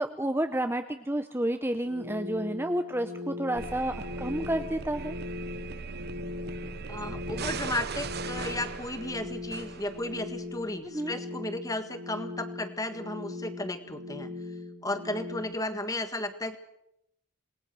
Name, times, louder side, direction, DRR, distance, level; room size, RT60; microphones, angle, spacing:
voice 1, 0.0-5.1 10.9-11.2, right 1 dB, 10° right, 7 dB, 0.8 m, -30 dB
sound 1, 1.8-15.4, left 2 dB, 80° right, 7.5 m, -40 dB
sound 2, 3.5-10.4, right 4 dB, 45° right, 0.9 m, -39 dB
voice 2, 6.9-14.3 14.8-16.6, left 1 dB, 15° left, 9 dB, 1.7 m, -34 dB
27.0 x 20.0 x 6.3 m, 0.81 s
head